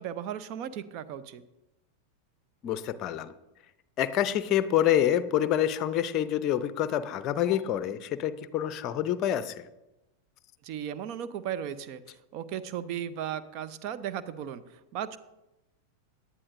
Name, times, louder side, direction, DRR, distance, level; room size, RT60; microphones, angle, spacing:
voice 1, 0.0-1.4 10.6-12.0 12.3-15.2, right 9 dB, 40° right, 12 dB, 0.7 m, -36 dB
voice 2, 2.6-3.3 4.0-9.7, left 11 dB, 35° left, 15 dB, 0.6 m, -27 dB
18.5 x 11.0 x 2.6 m, 0.97 s
figure-of-eight pair, 90°, 0 cm